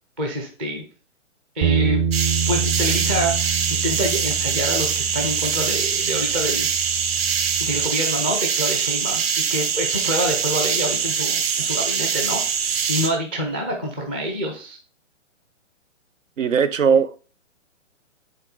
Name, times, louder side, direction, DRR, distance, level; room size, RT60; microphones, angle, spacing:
voice 1, 0.2-0.8 1.6-2.0 2.5-6.7 7.6-12.4 12.9-14.8, equal, 10° right, 0.4 m, -26 dB
sound 1, 1.6-7.9, right 6 dB, 30° right, 1.0 m, -27 dB
sound 2, 2.1-13.1, right 7 dB, 50° right, 1.5 m, -23 dB
voice 2, 16.4-17.3, right 6 dB, 85° right, 0.9 m, -19 dB
8.8 x 4.0 x 3.9 m
hypercardioid pair, 150°, 38 cm